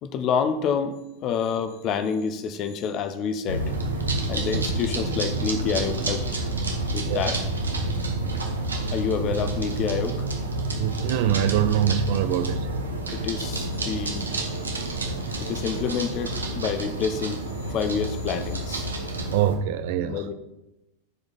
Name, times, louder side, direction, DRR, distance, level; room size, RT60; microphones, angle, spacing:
voice 1, 0.0-3.7 4.3-6.2 6.9-7.4 8.9-10.3 13.1-14.3 15.4-18.9 20.0-20.3, left 6 dB, 35° left, 10 dB, 0.9 m, -28 dB
sound 1, 3.5-19.5, right 2 dB, 75° right, 1.3 m, -29 dB
voice 2, 10.8-12.7 19.3-20.2, right 10 dB, 50° right, 11 dB, 0.5 m, -24 dB
15.0 x 5.0 x 4.1 m, 0.94 s
figure-of-eight pair, 90°, 0 cm